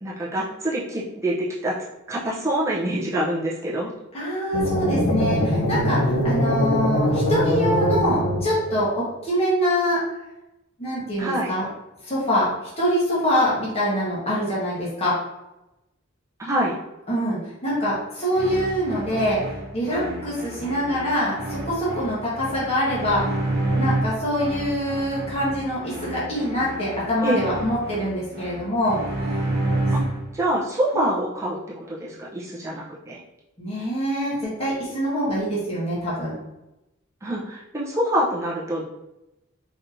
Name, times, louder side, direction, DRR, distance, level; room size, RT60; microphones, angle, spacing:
voice 1, 0.0-1.8 2.1-3.9 11.2-11.5 16.4-16.7 27.2-27.4 29.9-30.0 30.3-31.6 31.9-33.2 37.2-38.9, right 1 dB, 15° right, -7 dB, 0.7 m, -25 dB
voice 2, 4.1-10.0 10.8-11.7 12.0-15.2 17.1-19.4 19.7-23.4 23.7-29.0 29.3-29.4 30.9-31.1 33.6-36.3, equal, 30° left, -8 dB, 1.4 m, -24 dB
sound 1, 4.5-8.8, equal, 70° left, 0.9 m, -22 dB
sound 2, 18.3-30.4, right 1 dB, 50° right, 0.9 m, -29 dB
4.2 x 3.3 x 2.7 m, 0.95 s
head